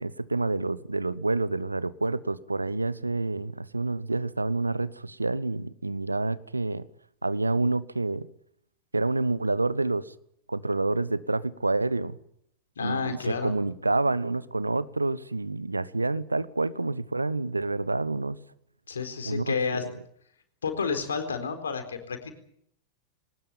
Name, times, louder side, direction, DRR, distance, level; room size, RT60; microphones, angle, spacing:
voice 1, 0.0-6.8 7.2-8.3 8.9-10.1 10.5-12.2 12.8-18.4 19.2-19.5, right 2 dB, 80° right, 1.0 m, -28 dB
voice 2, 12.8-13.5 18.9-19.9 20.6-22.3, left 5 dB, 70° left, 4.1 m, -30 dB
21.5 x 19.5 x 9.0 m
figure-of-eight pair, 90°, 0 cm